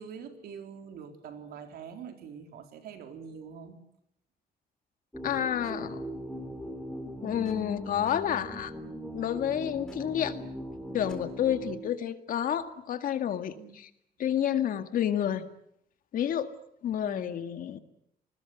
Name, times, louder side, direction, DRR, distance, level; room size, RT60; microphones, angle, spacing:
voice 1, 0.0-3.8 10.0-10.5 13.5-13.8 17.0-17.5, right 7 dB, 80° right, 6 dB, 4.0 m, -45 dB
sound 1, 5.1-11.8, equal, 5° left, 3.9 m, -40 dB
voice 2, 5.2-6.0 7.2-8.7 9.1-10.4 10.9-13.9 14.2-15.5 16.1-16.5 16.8-17.8, left 10 dB, 60° left, 9 dB, 2.0 m, -30 dB
28.5 x 20.5 x 8.1 m, 0.73 s
cardioid pair, 150°, 16 cm